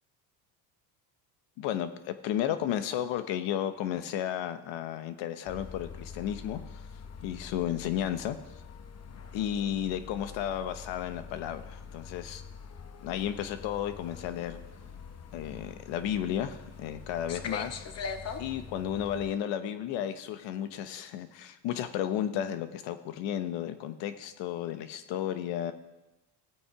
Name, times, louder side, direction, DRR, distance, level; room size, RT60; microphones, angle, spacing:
voice 1, 1.6-6.6 7.2-8.4 9.3-12.4 13.0-14.6 15.3-17.9 18.4-25.7, left 10 dB, 85° left, 10 dB, 1.1 m, -33 dB
sound 1, 5.5-19.3, left 5 dB, 35° left, 0.9 m, -43 dB
16.0 x 8.8 x 4.8 m, 1.0 s
cardioid pair, 125°, 43 cm